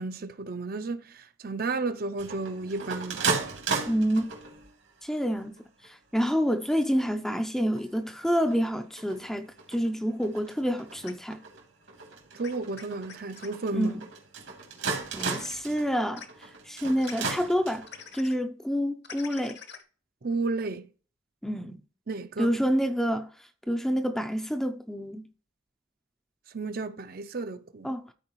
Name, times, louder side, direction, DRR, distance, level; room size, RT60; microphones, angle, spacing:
voice 1, 0.0-3.2 12.3-13.9 20.2-20.9 22.1-22.5 26.5-27.9, right 3 dB, 45° right, 0.5 m, -32 dB
sound 1, 2.2-4.7 5.3-5.9 6.3-6.4 6.6-7.2 7.6-18.1, right 4 dB, 85° right, 2.7 m, -36 dB
voice 2, 3.9-4.3 5.0-5.5 5.8-11.4 13.7-14.1 15.1-17.9 18.1-19.6 21.4-21.8 22.4-23.3 23.7-25.3 27.8-28.0, equal, ahead, 0.5 m, -28 dB
sound 2, 11.1-11.2 12.4-13.5 15.1-15.6 16.2-16.3 17.0-17.1 17.9-18.3 19.0-19.8, left 7 dB, 55° left, 1.0 m, -44 dB
13.5 x 4.5 x 3.0 m
head